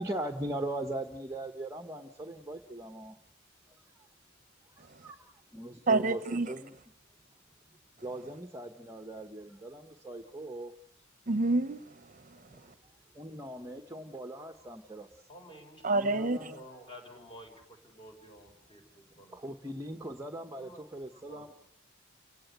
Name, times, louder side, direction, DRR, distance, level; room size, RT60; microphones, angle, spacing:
voice 1, 0.0-3.2 4.8-6.7 8.0-10.7 12.3-12.6 13.1-15.3 15.9-16.6 19.3-21.5, right 1 dB, 15° right, 1.1 m, -40 dB
voice 2, 5.9-6.5 11.3-12.6 15.8-16.5, right 3 dB, 40° right, 1.0 m, -29 dB
voice 3, 15.3-19.4 20.0-20.1 20.6-21.5, equal, 25° left, 5.1 m, -52 dB
29.5 x 17.5 x 8.1 m
head